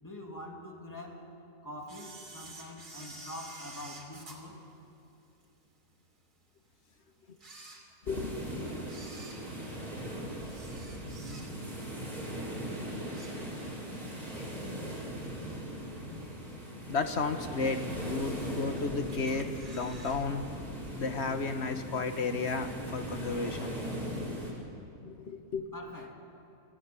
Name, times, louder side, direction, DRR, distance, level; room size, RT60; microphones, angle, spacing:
voice 1, 0.0-1.2 1.6-4.6 25.7-26.2, left 1 dB, 10° left, 0 dB, 2.5 m, -44 dB
Camera, 1.9-5.4 5.9-6.0 6.7-6.8 7.3-8.3 8.8-11.8 12.2-12.5 12.8-13.9 14.2-14.3 15.2-15.3 15.9-16.3 16.7-16.8 17.0-17.1 17.3-17.4 18.1-18.7 19.1-20.3 20.5-20.6 20.9-21.0, right 2 dB, 90° right, 3.3 m, -50 dB
voice 2, 8.1-8.4 16.9-20.4 21.0-23.8 25.0-25.7, left 4 dB, 45° left, 7 dB, 1.4 m, -33 dB
sound 1, 8.1-24.5, right 1 dB, 70° right, 5.4 m, -39 dB
26.5 x 14.5 x 8.2 m, 2.6 s
omnidirectional pair, 1.6 m